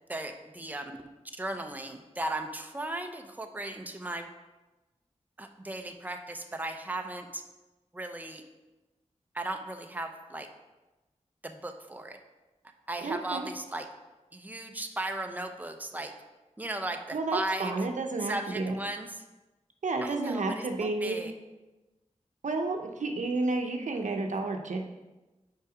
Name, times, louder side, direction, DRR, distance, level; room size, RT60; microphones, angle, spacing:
voice 1, 0.1-0.8 1.4-4.3 5.4-7.4 7.9-8.4 9.3-10.5 11.4-12.2 12.9-13.9 14.3-16.1 16.6-17.7 18.2-19.2 20.0-21.3, right 2 dB, 15° right, 5 dB, 0.7 m, -36 dB
voice 2, 13.0-13.5 17.1-18.8 19.8-21.2 22.4-24.8, right 3 dB, 80° right, 4 dB, 0.7 m, -31 dB
5.6 x 4.7 x 5.0 m, 1.1 s
cardioid pair, 50°, 12 cm